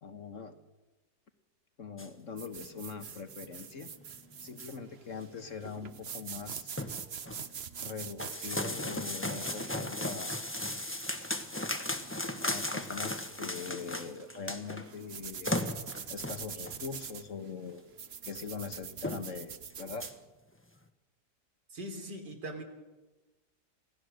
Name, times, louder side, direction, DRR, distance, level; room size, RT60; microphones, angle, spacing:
voice 1, 0.0-0.6 1.8-3.9 4.4-6.7 7.8-10.3 12.4-15.5 16.1-17.8 18.2-20.1, left 5 dB, 50° left, 8 dB, 1.5 m, -42 dB
sound 1, 2.0-2.1 2.6-2.8 3.1-3.2 3.8-3.9 4.3-4.8 5.2-5.3 5.6-5.7 6.1-6.2 6.5-7.4 8.2-14.9 15.1-15.2 15.4-16.8 17.7-17.8 18.3-18.4 18.6-18.7 19.0-19.4 19.7-20.1, left 1 dB, 10° left, 1.1 m, -36 dB
sound 2, 2.4-20.2, right 7 dB, 45° right, 1.0 m, -45 dB
voice 2, 21.7-22.6, right 1 dB, 80° right, 4 dB, 4.0 m, -41 dB
27.0 x 17.5 x 6.5 m, 1.2 s
omnidirectional pair, 1.8 m